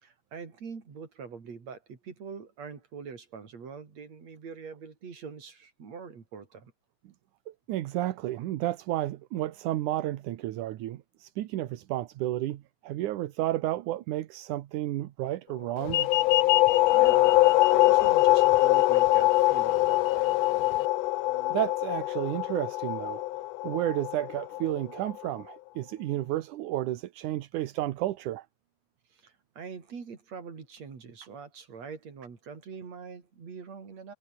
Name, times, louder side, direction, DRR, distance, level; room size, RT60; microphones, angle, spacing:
voice 1, 0.0-6.7 16.9-20.3 29.1-34.1, right 5 dB, 55° right, 4.9 m, -44 dB
voice 2, 7.5-16.1 21.3-23.2 23.6-28.5, right 14 dB, 75° right, 2.5 m, -32 dB
sound 1, 15.8-25.2, left 17 dB, 90° left, 1.4 m, -23 dB
sound 2, 15.8-20.9, left 12 dB, 65° left, 1.7 m, -33 dB
omnidirectional pair, 3.7 m